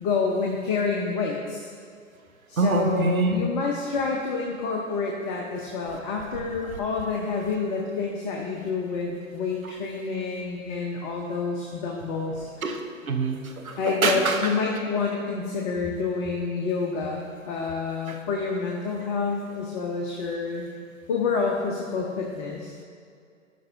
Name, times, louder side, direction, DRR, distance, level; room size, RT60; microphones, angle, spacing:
voice 1, 0.0-1.7 2.5-12.5 13.8-20.7 21.1-22.7, left 4 dB, 30° left, -1 dB, 0.7 m, -28 dB
voice 2, 2.6-3.4 12.6-12.8 13.1-14.5 18.1-18.2, right 3 dB, 90° right, 5 dB, 0.9 m, -25 dB
12.5 x 5.4 x 2.7 m, 2.2 s
figure-of-eight pair, 115°, 40 cm